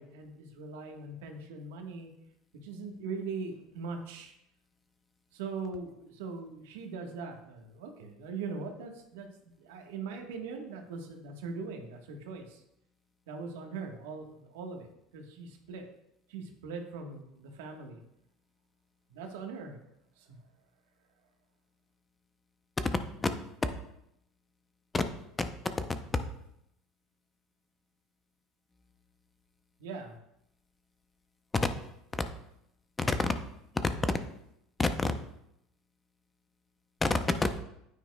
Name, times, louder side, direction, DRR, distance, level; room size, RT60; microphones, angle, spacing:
voice 1, 0.0-2.1 2.6-4.3 5.3-12.6 13.3-14.9 15.1-15.8 16.3-18.0 19.1-19.8 20.2-20.4 29.8-30.2, right 4 dB, 90° right, 3 dB, 1.4 m, -41 dB
voice 2, 33.0-33.3 34.0-34.2 34.8-35.1 37.0-37.6, left 3 dB, 15° left, 8 dB, 0.7 m, -28 dB
9.5 x 9.0 x 2.3 m, 0.80 s
supercardioid pair, 115°, 0 cm